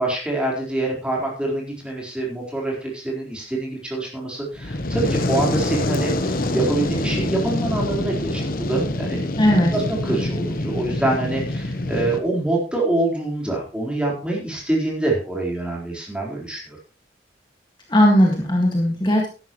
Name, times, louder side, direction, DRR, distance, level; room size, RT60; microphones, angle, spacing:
voice 1, 0.0-16.8, right 2 dB, 5° right, -3 dB, 4.1 m, -25 dB
Fire, 4.5-12.2, left 1 dB, 50° left, 1.2 m, -25 dB
voice 2, 9.4-9.8 17.9-19.3, equal, 25° left, 0 dB, 1.9 m, -17 dB
13.5 x 11.0 x 3.1 m, 0.36 s
head